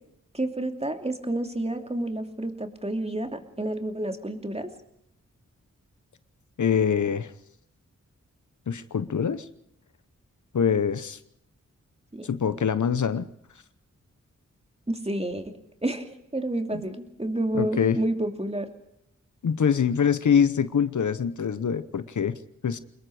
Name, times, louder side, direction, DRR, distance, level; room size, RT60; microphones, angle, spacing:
voice 1, 0.3-4.7 12.1-12.3 14.9-15.5 15.8-18.7, right 1 dB, 20° right, 5 dB, 2.7 m, -30 dB
voice 2, 6.6-7.3 8.7-9.5 10.5-11.2 12.2-13.3 16.7-16.8 17.5-18.0 19.4-22.4 22.6-22.8, left 7 dB, 70° left, 13 dB, 0.9 m, -24 dB
25.5 x 21.5 x 4.9 m, 0.77 s
wide cardioid pair, 60°, 31 cm